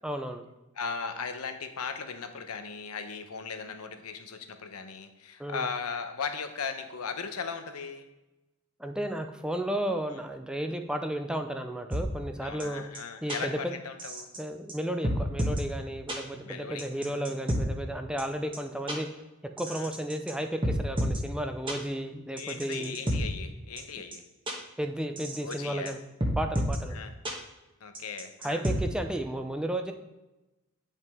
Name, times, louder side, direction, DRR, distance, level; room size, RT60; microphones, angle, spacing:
voice 1, 0.0-0.5 5.4-5.7 8.8-12.8 13.2-13.7 14.4-19.1 19.6-22.9 24.8-26.0 26.4-27.0 28.4-29.9, right 1 dB, 5° right, 5 dB, 0.4 m, -33 dB
voice 2, 0.7-8.1 12.4-14.3 16.4-17.3 19.7-19.9 22.3-24.2 25.4-25.9 26.9-27.1 27.8-28.7, left 5 dB, 80° left, 7 dB, 0.8 m, -37 dB
sound 1, 11.9-12.0 12.6-12.7 12.9-13.0 13.3-13.4 14.0-14.4 14.7-14.8 15.0-15.6 16.1-16.2 16.8-17.6 18.2-18.3 18.5-18.6 18.9-19.0 19.6-20.3 20.6-21.2 21.7-21.8 22.4-23.2 23.8-23.9 24.1-24.2 24.5-24.6 25.2-25.5 25.8-25.9 26.2-26.8 27.2-27.3 27.9-28.8, equal, 25° right, 1.2 m, -30 dB
9.6 x 5.4 x 3.6 m, 1.0 s
head